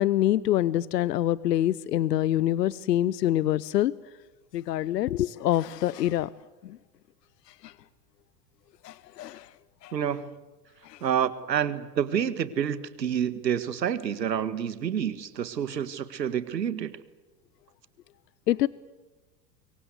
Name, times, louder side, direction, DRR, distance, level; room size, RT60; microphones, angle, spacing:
voice 1, 0.0-3.9 4.5-6.3 6.6-6.8 7.6-7.7 8.8-9.5 9.8-9.9 10.8-11.0 18.5-18.7, left 13 dB, 75° left, 21 dB, 0.8 m, -25 dB
voice 2, 9.9-10.4 11.0-17.0, right 8 dB, 85° right, 15 dB, 1.8 m, -28 dB
26.0 x 23.0 x 8.2 m, 1.2 s
hypercardioid pair, 95°, 49 cm